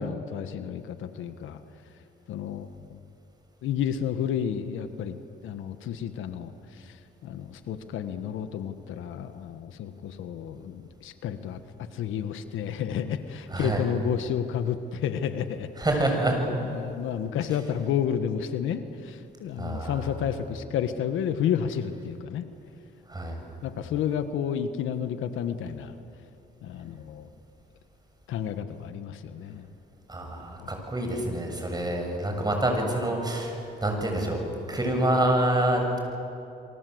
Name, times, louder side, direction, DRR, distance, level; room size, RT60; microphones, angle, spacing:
voice 1, 0.0-1.6 2.3-3.0 3.6-5.2 5.4-7.0 7.2-15.7 16.6-22.4 23.6-26.0 26.6-27.3 28.3-29.7 30.6-30.7, left 8 dB, 85° left, 10 dB, 1.5 m, -31 dB
voice 2, 13.5-13.8 15.8-16.4 19.6-20.1 23.1-23.4 30.1-34.4 34.7-36.0, right 1 dB, 20° right, 3 dB, 6.9 m, -27 dB
28.0 x 24.0 x 8.0 m, 2.8 s
cardioid pair, 90°, 20 cm